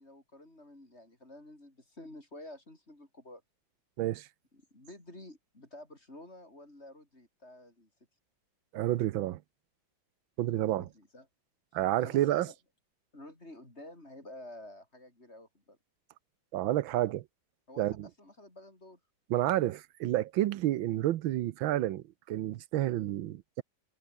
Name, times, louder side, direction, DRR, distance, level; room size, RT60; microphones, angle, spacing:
voice 1, 0.0-3.4 4.5-7.9 10.7-11.3 12.0-12.5 13.1-15.8 17.7-19.0, left 1 dB, 30° left, 6.1 m, -50 dB
voice 2, 4.0-4.3 8.7-9.4 10.4-10.9 11.7-12.5 16.5-17.2 17.8-18.1 19.3-23.6, right 14 dB, 80° right, 1.5 m, -30 dB
omnidirectional pair, 2.2 m